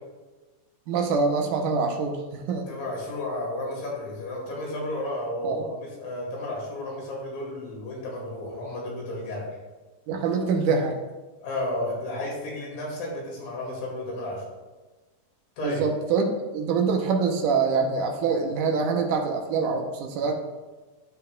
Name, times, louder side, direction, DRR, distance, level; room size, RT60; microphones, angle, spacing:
voice 1, 0.9-2.7 5.4-5.6 10.1-11.0 15.6-20.4, right 5 dB, 80° right, 3 dB, 2.2 m, -25 dB
voice 2, 2.7-9.6 11.4-14.4 15.6-15.9, left 1 dB, 85° left, -3 dB, 3.8 m, -32 dB
14.0 x 4.8 x 2.3 m, 1.2 s
omnidirectional pair, 3.9 m